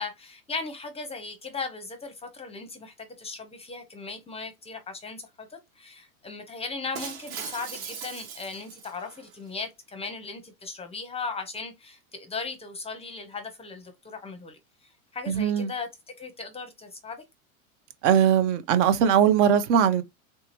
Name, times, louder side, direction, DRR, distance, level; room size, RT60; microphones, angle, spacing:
voice 1, 0.0-15.9 16.2-17.2, left 4 dB, 15° left, 0.6 m, -37 dB
Shatter, 6.9-9.3, right 7 dB, 80° right, 1.5 m, -39 dB
voice 2, 15.3-15.7 18.0-20.0, right 8 dB, 60° right, 0.8 m, -20 dB
3.5 x 2.8 x 3.0 m
hypercardioid pair, 115°, 41 cm